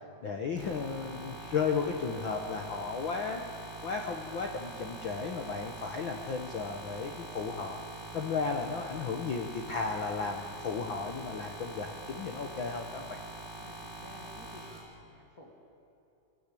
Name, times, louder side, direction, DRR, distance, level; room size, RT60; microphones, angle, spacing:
voice 1, 0.2-3.4 3.8-7.8 8.1-13.2, left 5 dB, 75° left, 3 dB, 1.1 m, -34 dB
sound 1, 0.6-14.8, right 1 dB, 5° left, 7.1 m, -44 dB
voice 2, 13.6-15.5, left 1 dB, 30° left, -2 dB, 2.1 m, -53 dB
24.0 x 14.5 x 8.5 m, 2.8 s
omnidirectional pair, 3.9 m